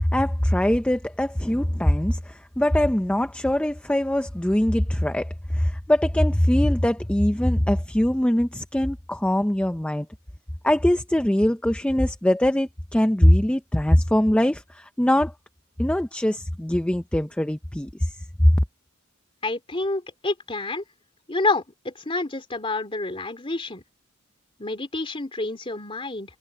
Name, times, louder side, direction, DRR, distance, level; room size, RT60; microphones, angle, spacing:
voice 1, 0.1-10.1 10.6-15.3 15.8-18.1, left 1 dB, 5° left, 0.5 m, -22 dB
voice 2, 19.4-20.8 21.3-23.8 24.6-26.4, left 2 dB, 25° left, 3.3 m, -28 dB
head